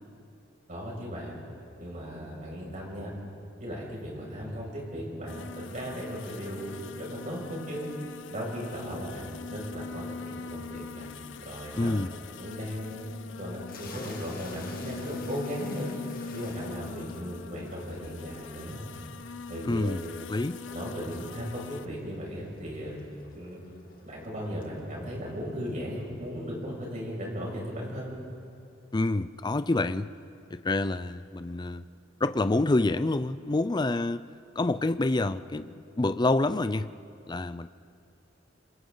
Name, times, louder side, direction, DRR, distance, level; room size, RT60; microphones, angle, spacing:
voice 1, 0.7-1.4 1.8-3.1 3.6-7.8 8.3-11.1 11.4-12.0 12.4-13.1 13.4-15.9 16.3-18.8 19.5-20.0 20.7-23.0 23.3-23.6 24.1-28.2, equal, 40° right, -3 dB, 6.5 m, -37 dB
sound 1, 5.3-21.9, left 5 dB, 70° left, 0.6 m, -42 dB
voice 2, 11.8-12.1 19.6-20.0 20.3-20.6 28.9-30.1 30.5-31.9 32.2-34.2 34.6-36.9 37.3-37.7, left 2 dB, 20° left, 13 dB, 0.5 m, -27 dB
sound 2, 13.7-27.0, left 3 dB, 50° left, 2.2 m, -51 dB
28.0 x 26.5 x 4.0 m, 2.5 s
head